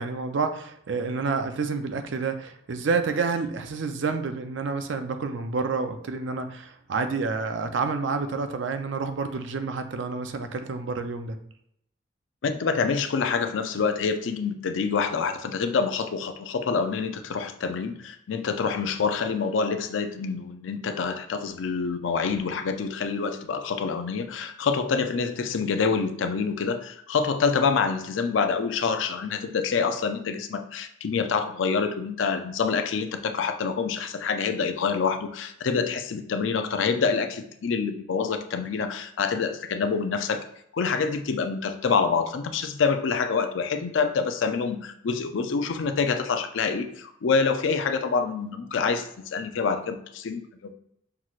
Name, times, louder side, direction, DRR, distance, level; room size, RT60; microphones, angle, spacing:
voice 1, 0.0-11.4, right 4 dB, 70° right, 8 dB, 0.5 m, -29 dB
voice 2, 12.4-40.4 40.7-50.7, left 5 dB, 80° left, 8 dB, 0.4 m, -26 dB
5.8 x 3.0 x 2.4 m, 0.72 s
head